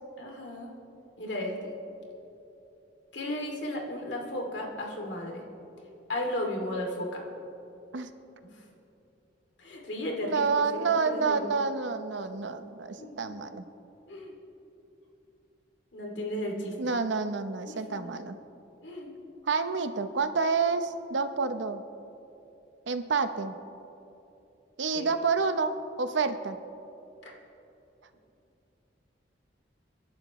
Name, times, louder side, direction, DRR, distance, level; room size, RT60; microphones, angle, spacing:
voice 1, 0.2-0.7 1.2-1.7 3.1-5.4 6.1-7.2 9.6-10.4 10.7-11.5 13.0-13.4 14.1-14.3 15.9-16.7 17.7-18.1 18.8-19.1 24.9-25.1 27.2-27.3, left 1 dB, 70° left, 0 dB, 2.5 m, -35 dB
voice 2, 10.2-13.6 16.8-18.4 19.5-21.8 22.9-23.6 24.8-26.6, right 5 dB, 75° right, 9 dB, 0.8 m, -29 dB
29.5 x 11.5 x 3.1 m, 2.9 s
head